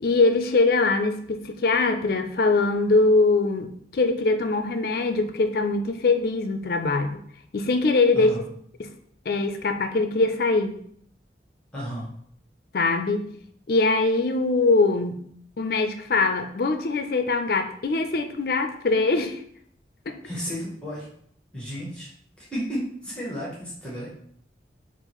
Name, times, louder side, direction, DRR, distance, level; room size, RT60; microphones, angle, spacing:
voice 1, 0.0-7.2 7.5-8.3 8.8-8.9 9.3-10.8 12.7-13.2 13.7-15.2 15.6-19.4 20.1-20.2, left 3 dB, 55° left, 7 dB, 0.4 m, -22 dB
voice 2, 11.7-12.1 20.2-21.1 21.5-22.1 22.4-24.1, equal, 5° left, -7 dB, 0.9 m, -33 dB
5.5 x 2.5 x 3.0 m, 0.64 s
head